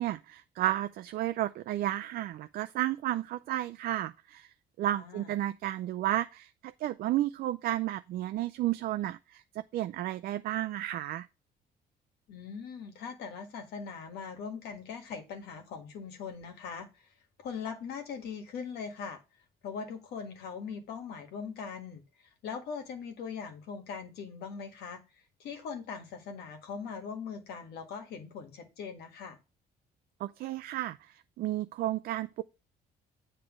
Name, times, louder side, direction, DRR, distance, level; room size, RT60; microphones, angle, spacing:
voice 1, 0.0-4.5 4.8-9.4 9.7-11.3 30.2-32.4, right 14 dB, 60° right, 0.4 m, -32 dB
voice 2, 4.9-5.3 12.3-16.9 17.4-19.2 19.6-25.0 25.4-29.4, left 6 dB, 75° left, 1.6 m, -41 dB
7.9 x 3.3 x 6.1 m
cardioid pair, 110°, 17 cm